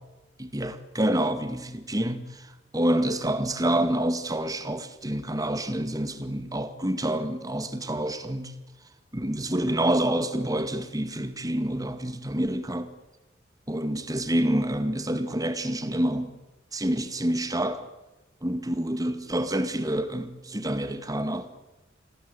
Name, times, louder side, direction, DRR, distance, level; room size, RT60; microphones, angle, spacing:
voice 1, 0.4-8.5 9.1-12.9 13.7-16.3 16.7-17.9 18.4-21.5, right 1 dB, 20° right, 2.1 m, -27 dB
28.0 x 22.0 x 8.4 m
head